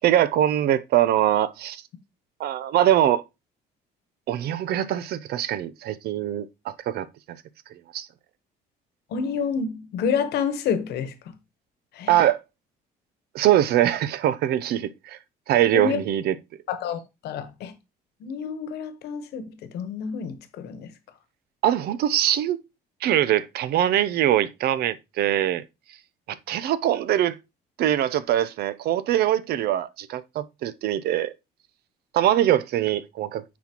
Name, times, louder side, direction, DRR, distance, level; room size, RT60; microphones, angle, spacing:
voice 1, 0.0-1.8 2.4-3.2 4.3-7.1 7.9-8.1 12.1-12.4 13.3-15.2 15.5-16.3 21.6-22.6 23.0-25.6 26.3-27.4 27.8-31.3 32.1-33.4, right 12 dB, 70° right, 0.6 m, -22 dB
voice 2, 9.1-11.1 11.9-12.3 15.7-16.0 16.7-17.7 18.2-20.9, left 6 dB, 75° left, 1.1 m, -29 dB
9.3 x 4.2 x 2.9 m
cardioid pair, 110°, 17 cm